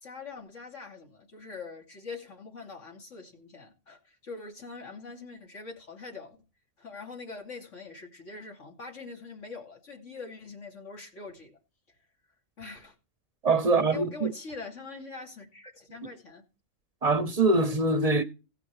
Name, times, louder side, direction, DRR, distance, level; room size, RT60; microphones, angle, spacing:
voice 1, 0.0-6.4 6.8-11.6 12.6-12.9 13.7-16.4, left 4 dB, 70° left, 2.9 m, -43 dB
voice 2, 13.4-14.3 17.0-18.2, right 3 dB, 40° right, 0.7 m, -23 dB
16.0 x 5.8 x 4.7 m
omnidirectional pair, 1.3 m